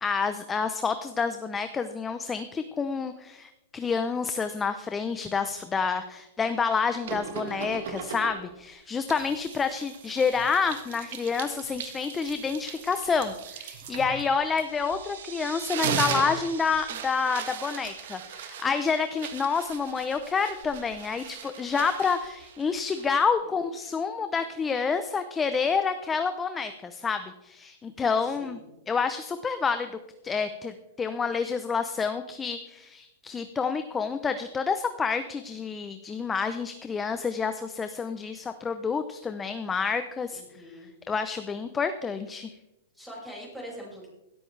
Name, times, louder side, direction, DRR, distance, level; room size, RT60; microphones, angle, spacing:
voice 1, 0.0-28.6 28.9-30.0 30.2-40.4 41.1-42.5, left 5 dB, 15° left, 9 dB, 0.7 m, -28 dB
sound 1, 7.1-8.6 9.1-15.2 15.5-23.3, right 7 dB, 60° right, 1.5 m, -37 dB
sound 2, 13.9-20.1, right 7 dB, 80° right, 2.2 m, -46 dB
voice 2, 28.2-28.7 40.3-40.9 42.9-44.1, equal, ahead, -4 dB, 5.8 m, -43 dB
17.5 x 13.0 x 3.3 m, 0.91 s
hypercardioid pair, 150°, 0 cm